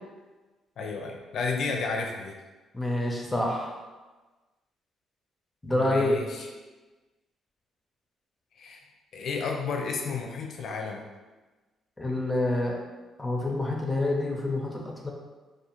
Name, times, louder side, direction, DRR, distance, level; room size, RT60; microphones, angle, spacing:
voice 1, 0.8-2.3 5.7-6.5 8.6-8.8 9.1-11.0, left 4 dB, 65° left, 2 dB, 0.4 m, -32 dB
voice 2, 2.7-3.7 5.6-6.2 12.0-12.8 13.2-15.1, left 1 dB, 20° left, -1 dB, 0.5 m, -27 dB
2.4 x 2.2 x 2.9 m, 1.2 s
supercardioid pair, 60°, 0 cm